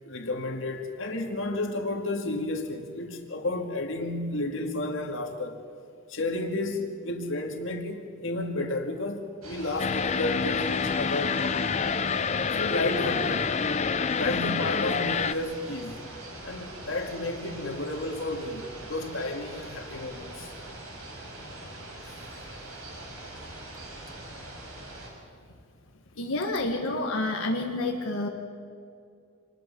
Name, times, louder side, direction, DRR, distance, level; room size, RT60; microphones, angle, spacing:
voice 1, 0.0-5.6 6.1-11.7 12.5-13.5 14.1-16.0 16.4-20.5, left 2 dB, 60° left, 2.2 m, -32 dB
sound 1, 9.4-25.1, right 1 dB, 85° right, 6.0 m, -42 dB
sound 2, 9.8-15.3, left 5 dB, 30° left, 0.5 m, -27 dB
voice 2, 26.2-28.3, left 2 dB, 80° left, 1.8 m, -29 dB
27.0 x 20.0 x 5.5 m
head